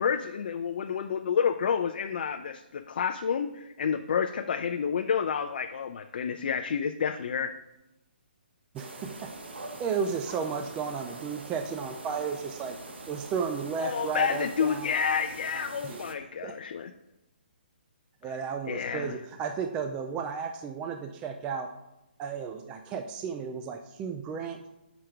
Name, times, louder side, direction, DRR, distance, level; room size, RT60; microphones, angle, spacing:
voice 1, 0.0-7.6 13.8-16.9 18.2-19.2, left 7 dB, 55° left, 7 dB, 0.4 m, -29 dB
voice 2, 8.7-9.3 9.8-12.8 13.1-14.9 15.8-16.0 16.4-16.5 18.2-21.7 22.2-24.6, right 6 dB, 15° right, 5 dB, 0.3 m, -33 dB
sound 1, 8.8-16.1, right 2 dB, 90° right, 1.1 m, -43 dB
6.6 x 5.1 x 4.5 m, 0.93 s
hypercardioid pair, 155°, 6 cm